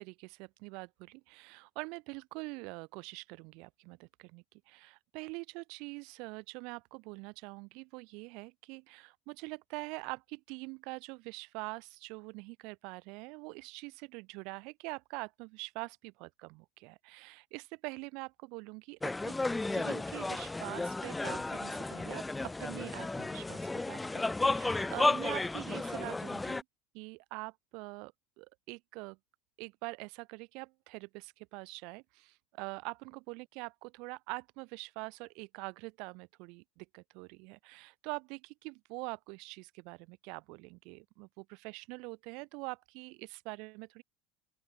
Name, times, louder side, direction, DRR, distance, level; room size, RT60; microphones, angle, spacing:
voice 1, 0.0-19.4 19.7-26.6 26.9-29.2 29.6-44.0, right 29 dB, 60° right, 5.6 m, -44 dB
sound 1, 19.0-26.6, left 2 dB, 10° left, 1.5 m, -33 dB
open air
supercardioid pair, 145°, 0 cm